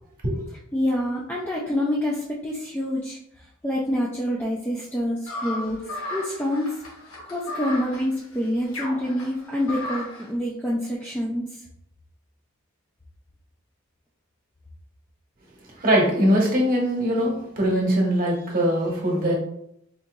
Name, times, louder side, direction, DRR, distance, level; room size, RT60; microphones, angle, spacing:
voice 1, 0.7-3.2 3.6-5.8 6.1-6.7 7.3-11.5, left 1 dB, 10° left, -4 dB, 0.4 m, -26 dB
sound 1, 5.3-10.3, left 1 dB, 90° left, 1.1 m, -35 dB
voice 2, 15.8-19.3, equal, 45° right, -2 dB, 1.0 m, -21 dB
3.9 x 2.7 x 2.3 m, 0.75 s
head